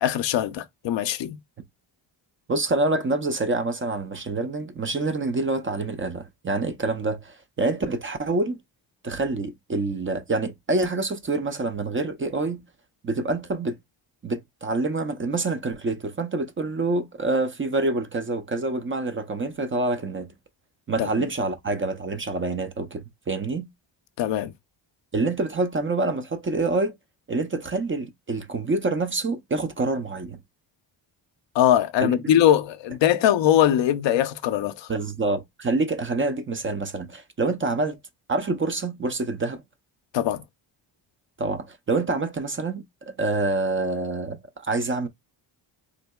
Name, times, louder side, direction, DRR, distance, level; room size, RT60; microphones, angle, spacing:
voice 1, 0.0-1.4 21.0-21.3 24.2-24.5 31.5-34.9 40.1-40.4, left 11 dB, 65° left, 0.5 m, -21 dB
voice 2, 2.5-8.6 9.0-12.6 13.0-13.8 14.2-20.3 20.9-23.7 25.1-26.9 27.3-30.4 32.0-32.3 34.9-38.0 38.3-39.6 41.4-42.8 43.2-45.1, right 3 dB, 25° right, 0.4 m, -26 dB
3.8 x 2.7 x 2.2 m
cardioid pair, 95°, 48 cm